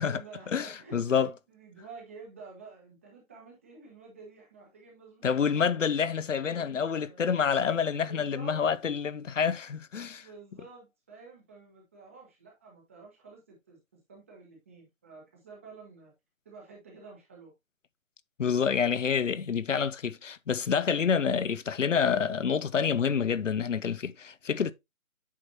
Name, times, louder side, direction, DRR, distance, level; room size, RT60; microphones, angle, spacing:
voice 1, 0.0-5.9 6.3-7.2 8.0-8.6 10.2-16.1 16.4-17.5, right 4 dB, 10° right, 1.0 m, -50 dB
voice 2, 0.5-1.3 5.2-10.3 18.4-24.7, left 6 dB, 65° left, 0.7 m, -28 dB
8.5 x 6.0 x 2.7 m
figure-of-eight pair, 165°, 41 cm